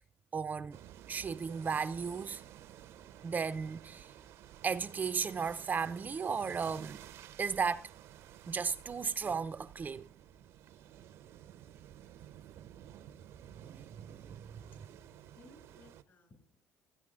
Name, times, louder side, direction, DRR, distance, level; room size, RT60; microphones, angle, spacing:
voice 1, 0.3-0.8 1.1-2.4 3.2-4.1 4.6-7.0 7.4-7.9 8.5-10.1 13.6-14.3, right 6 dB, 35° right, 0.6 m, -35 dB
sound 1, 0.7-16.0, right 11 dB, 75° right, 0.8 m, -53 dB
voice 2, 14.9-16.6, left 2 dB, 50° left, 7.7 m, -61 dB
15.0 x 9.0 x 3.8 m
supercardioid pair, 80°, 5 cm